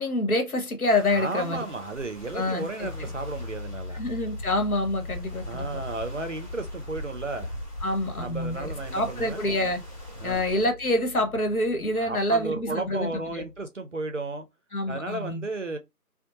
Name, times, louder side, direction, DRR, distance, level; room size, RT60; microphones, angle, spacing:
voice 1, 0.0-1.6 2.3-3.1 3.9-5.7 7.8-9.8 10.2-13.4 14.7-15.4, left 1 dB, 70° left, 1.1 m, -27 dB
sound 1, 0.8-10.6, equal, 10° right, 1.1 m, -42 dB
voice 2, 1.1-4.0 5.5-7.6 8.2-9.5 10.2-10.4 12.0-14.5 14.9-15.8, right 3 dB, 55° right, 0.5 m, -34 dB
Piano, 2.8-13.6, left 3 dB, 45° left, 1.4 m, -41 dB
2.6 x 2.0 x 2.9 m
figure-of-eight pair, 165°, 45 cm